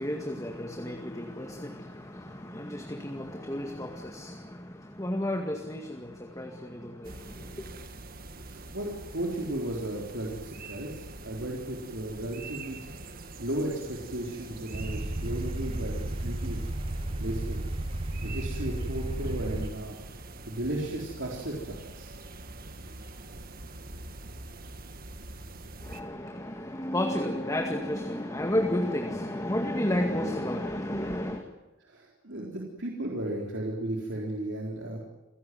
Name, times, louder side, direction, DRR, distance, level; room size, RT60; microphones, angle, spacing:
voice 1, 0.0-7.7 25.8-31.4, left 1 dB, 15° left, 3 dB, 2.0 m, -32 dB
sound 1, 7.0-26.0, right 2 dB, 45° right, 1.9 m, -44 dB
voice 2, 8.5-12.9 13.4-16.7 17.2-17.6 18.2-20.0 20.5-22.2 31.9-35.0, right 1 dB, 60° right, -2 dB, 4.0 m, -35 dB
sound 2, 14.7-19.7, right 1 dB, 25° right, 1.1 m, -33 dB
28.5 x 17.0 x 9.4 m, 1.0 s
head